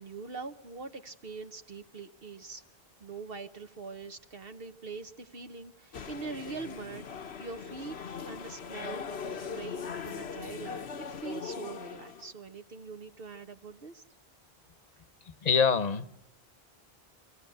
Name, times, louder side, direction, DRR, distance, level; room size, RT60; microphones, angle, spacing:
voice 1, 0.0-2.6 3.0-7.0 7.4-7.9 8.3-14.0, right 4 dB, 65° right, 1.1 m, -43 dB
sound 1, 5.9-12.3, left 6 dB, 85° left, 1.2 m, -40 dB
voice 2, 15.3-16.1, left 6 dB, 45° left, 1.0 m, -26 dB
26.0 x 16.0 x 7.8 m
omnidirectional pair, 1.0 m